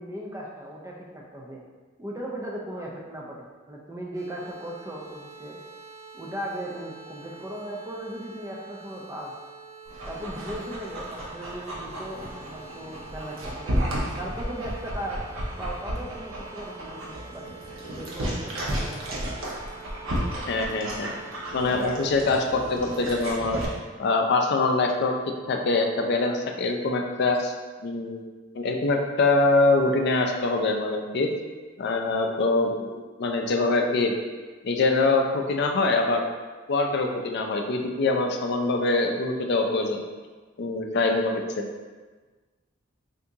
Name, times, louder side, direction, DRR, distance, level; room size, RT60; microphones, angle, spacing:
voice 1, 0.0-1.6 2.0-5.6 6.1-9.3 10.1-13.7 14.2-15.2 15.6-17.4 17.9-19.3, right 1 dB, 15° right, -2 dB, 0.4 m, -37 dB
sound 1, 4.1-23.0, right 4 dB, 60° right, 1.3 m, -46 dB
Dog, 9.9-23.7, equal, 80° right, 0.7 m, -33 dB
voice 2, 20.5-21.1 21.5-23.6 24.0-25.1 25.5-27.5 27.8-28.3 28.5-31.3 31.8-34.2 34.6-36.3 36.7-40.0 40.6-41.4, left 3 dB, 55° left, 3 dB, 0.4 m, -24 dB
2.8 x 2.6 x 3.5 m, 1.4 s
head